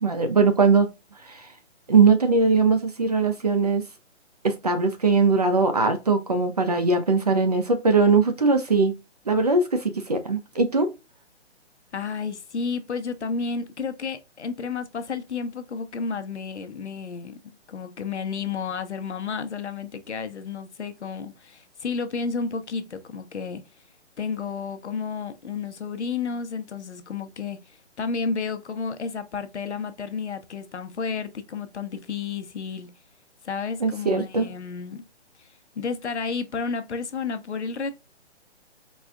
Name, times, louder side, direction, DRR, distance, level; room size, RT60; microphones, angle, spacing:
voice 1, 0.0-0.9 1.2-1.5 1.9-3.8 4.4-8.9 9.3-10.9 33.8-34.5, right 4 dB, 35° right, 0.5 m, -20 dB
voice 2, 11.9-23.6 24.2-32.9 33.4-35.0 35.4-35.5 35.8-37.9, left 5 dB, 75° left, 0.9 m, -31 dB
4.2 x 2.4 x 3.5 m
hypercardioid pair, 165°, 35 cm